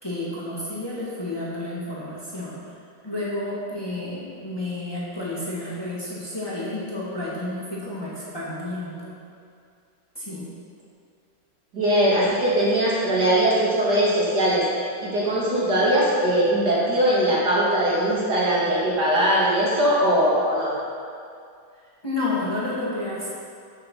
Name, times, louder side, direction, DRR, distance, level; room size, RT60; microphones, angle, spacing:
voice 1, 0.0-2.6 3.0-9.1 10.1-10.5 22.0-23.3, left 2 dB, 10° left, -7 dB, 2.4 m, -30 dB
voice 2, 11.7-14.6 15.0-20.7, right 1 dB, 55° right, -7 dB, 3.2 m, -21 dB
13.5 x 7.4 x 5.8 m, 2.3 s
omnidirectional pair, 2.2 m